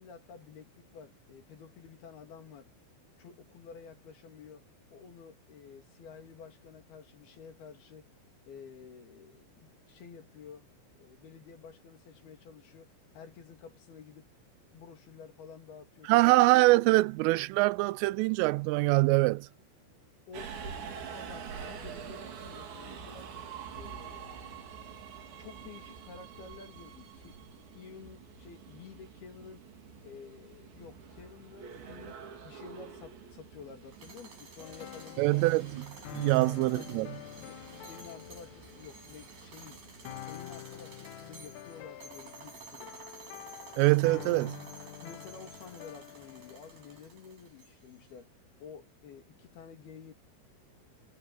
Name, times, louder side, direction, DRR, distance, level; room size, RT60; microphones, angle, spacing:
voice 1, 0.0-2.7 3.2-4.6 4.9-8.1 8.5-10.7 11.0-14.3 14.7-16.3 16.8-17.0 20.3-20.8 21.1-23.3 23.8-24.5 25.4-27.4 27.7-29.7 30.0-32.2 32.4-35.4 36.2-36.9 37.4-39.8 40.3-43.0 44.8-50.1, left 6 dB, 55° left, 4.1 m, -51 dB
voice 2, 16.0-19.5 35.2-37.2 43.8-44.7, right 21 dB, 85° right, 3.1 m, -24 dB
Subway metro underground, 20.3-40.2, right 6 dB, 65° right, 6.0 m, -47 dB
sound 1, 33.8-48.0, right 4 dB, 45° right, 9.2 m, -53 dB
sound 2, 34.6-47.0, left 12 dB, 90° left, 4.2 m, -47 dB
omnidirectional pair, 5.8 m